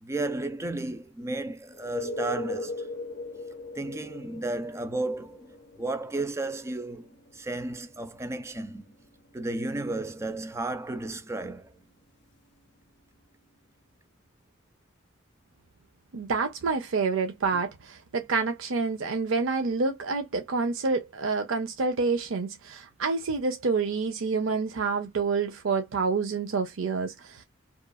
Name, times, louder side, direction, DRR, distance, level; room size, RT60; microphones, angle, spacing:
voice 1, 0.0-2.9 3.7-8.8 9.3-11.8, right 2 dB, 15° right, 0.4 m, -33 dB
sound 1, 1.7-13.3 17.5-17.6, left 2 dB, 55° left, 0.5 m, -41 dB
voice 2, 16.1-27.4, right 4 dB, 80° right, 0.5 m, -28 dB
2.9 x 2.3 x 2.2 m
head